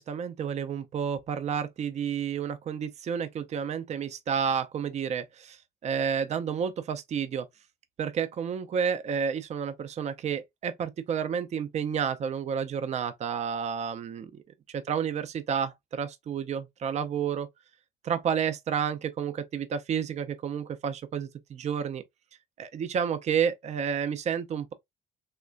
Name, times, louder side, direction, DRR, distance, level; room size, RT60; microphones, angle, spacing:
voice 1, 0.0-7.5 8.0-14.4 14.7-17.5 18.0-22.0 22.6-24.7, right 7 dB, 40° right, 0.5 m, -30 dB
3.3 x 2.9 x 2.5 m
cardioid pair, 110°, 17 cm